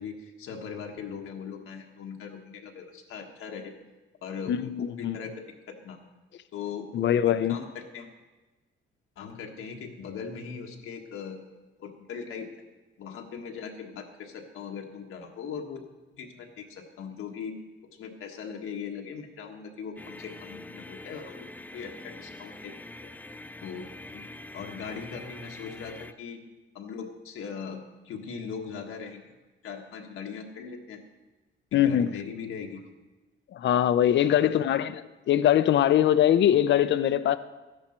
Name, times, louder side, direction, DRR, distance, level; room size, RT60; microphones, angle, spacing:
voice 1, 0.0-3.7 4.2-6.0 6.5-8.1 9.2-11.4 11.8-12.5 13.0-15.8 16.2-17.6 17.8-22.7 23.0-23.1 23.6-23.9 24.1-26.4 26.7-29.3 29.6-31.1 31.7-32.8 34.3-34.7, left 6 dB, 90° left, 1.5 m, -40 dB
voice 2, 4.5-5.2 6.9-7.6 31.7-32.1 33.5-37.4, left 10 dB, 60° left, 0.5 m, -22 dB
sound 1, 20.0-26.1, left 2 dB, 10° left, 0.3 m, -44 dB
13.0 x 10.5 x 4.4 m
wide cardioid pair, 160°, 21 cm